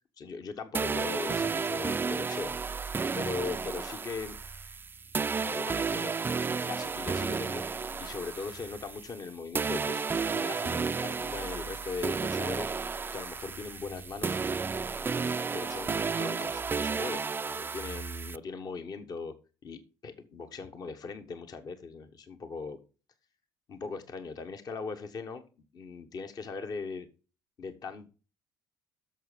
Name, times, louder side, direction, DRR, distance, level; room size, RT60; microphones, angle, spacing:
voice 1, 0.2-2.5 3.1-4.4 5.3-6.1 6.6-14.4 15.5-19.3 19.6-22.8 23.7-25.4 25.7-27.1 27.6-28.1, left 4 dB, 45° left, 7 dB, 1.2 m, -39 dB
sound 1, 0.7-9.3 9.5-18.4, right 5 dB, 25° right, 0.4 m, -32 dB
9.0 x 6.6 x 5.0 m, 0.34 s
hypercardioid pair, 60°, 9 cm